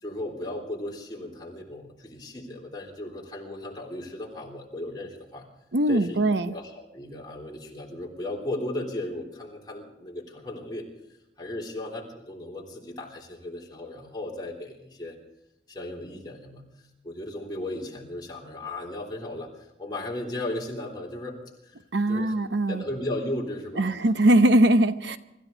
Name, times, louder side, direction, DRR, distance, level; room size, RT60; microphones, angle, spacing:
voice 1, 0.0-5.5 5.9-6.2 6.5-10.9 11.4-15.2 15.7-16.6 17.0-21.8 22.1-22.3 22.7-23.9, left 1 dB, 25° left, -2 dB, 3.4 m, -36 dB
voice 2, 5.7-6.5 21.9-22.8 23.8-25.2, right 1 dB, 85° right, 11 dB, 0.9 m, -21 dB
25.0 x 14.0 x 4.0 m, 0.91 s
head